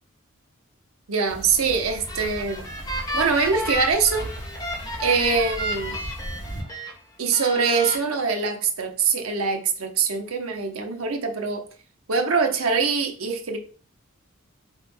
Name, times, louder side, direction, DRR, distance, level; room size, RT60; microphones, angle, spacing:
voice 1, 1.1-4.3 5.0-6.0 7.2-11.6 12.1-13.6, right 5 dB, 80° right, 4 dB, 0.8 m, -23 dB
sound 1, 1.3-6.6, right 1 dB, 40° left, 1.9 m, -38 dB
sound 2, 1.9-6.9 7.3-8.0, equal, 15° left, 1.0 m, -32 dB
3.5 x 3.1 x 4.7 m, 0.39 s
head